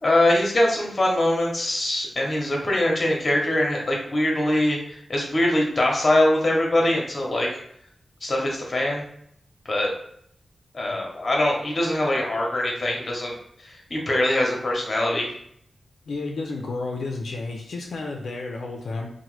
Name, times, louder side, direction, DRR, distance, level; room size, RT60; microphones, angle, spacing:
voice 1, 0.0-7.5 8.2-9.0 9.7-9.9 10.7-13.4 13.9-15.3, left 1 dB, 35° left, -1 dB, 0.8 m, -22 dB
voice 2, 16.1-19.1, left 3 dB, 85° left, 1 dB, 0.4 m, -31 dB
2.9 x 2.1 x 3.1 m, 0.70 s
wide cardioid pair, 110°, 0 cm